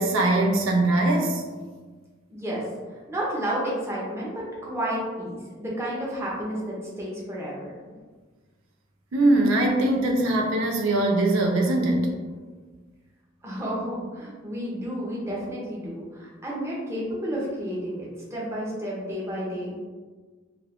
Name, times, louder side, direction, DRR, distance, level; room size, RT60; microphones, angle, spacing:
voice 1, 0.0-1.4 9.1-12.1, right 2 dB, 80° right, 1 dB, 0.4 m, -21 dB
voice 2, 2.3-7.7 13.4-19.8, equal, 15° right, -5 dB, 0.6 m, -31 dB
2.3 x 2.3 x 3.4 m, 1.4 s
head